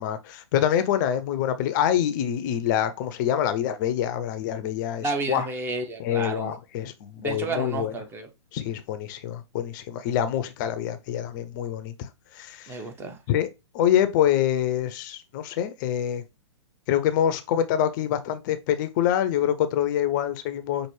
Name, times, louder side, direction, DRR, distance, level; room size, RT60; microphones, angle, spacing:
voice 1, 0.0-5.5 6.0-7.9 8.5-11.9 12.3-12.8 13.3-13.5 13.7-16.2 16.9-20.9, left 10 dB, 40° left, 0.5 m, -25 dB
voice 2, 5.0-6.5 7.2-8.3 12.7-13.2, right 3 dB, 15° right, 0.7 m, -31 dB
5.7 x 2.6 x 3.1 m
figure-of-eight pair, 115°, 16 cm